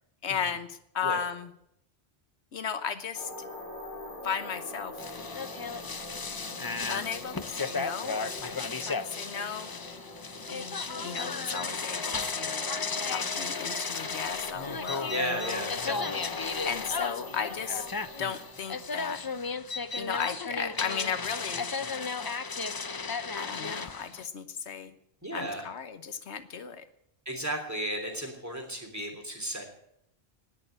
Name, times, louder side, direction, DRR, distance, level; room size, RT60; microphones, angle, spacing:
voice 1, 0.2-1.5 2.5-3.3 4.2-5.0 6.9-9.7 10.5-12.6 13.0-15.7 16.6-17.9 18.2-19.2 20.0-21.7 23.4-24.9 25.3-26.9, left 7 dB, 80° left, 11 dB, 1.2 m, -35 dB
sound 1, 3.1-19.5, left 1 dB, 50° left, 4.3 m, -43 dB
sound 2, 5.0-24.3, left 4 dB, 30° left, 0.4 m, -34 dB
voice 2, 15.0-16.2 25.2-25.7 27.2-29.7, equal, 15° right, 2 dB, 3.3 m, -34 dB
18.5 x 6.7 x 10.0 m, 0.75 s
omnidirectional pair, 1.1 m